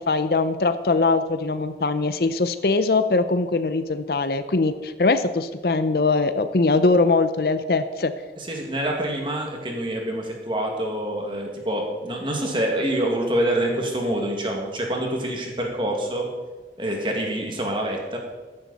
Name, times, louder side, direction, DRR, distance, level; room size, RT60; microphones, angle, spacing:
voice 1, 0.1-8.1, left 3 dB, 60° left, 11 dB, 0.6 m, -21 dB
voice 2, 8.4-16.3 16.8-18.2, right 1 dB, 30° right, 1 dB, 2.0 m, -26 dB
14.5 x 10.5 x 4.1 m, 1.3 s
head